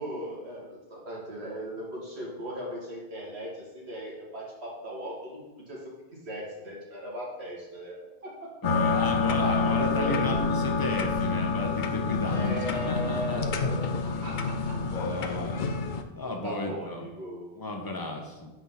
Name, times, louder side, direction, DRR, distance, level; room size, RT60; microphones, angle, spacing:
voice 1, 0.0-8.5 9.3-10.5 12.2-15.9 16.2-17.5, equal, 85° right, -4 dB, 2.1 m, -38 dB
sound 1, 8.6-16.0, left 4 dB, 55° left, 0.6 m, -28 dB
voice 2, 8.6-13.4 14.8-15.7 16.1-17.1 17.6-18.5, left 1 dB, 20° left, 1 dB, 1.0 m, -34 dB
5.4 x 4.8 x 5.7 m, 1.1 s
omnidirectional pair, 1.1 m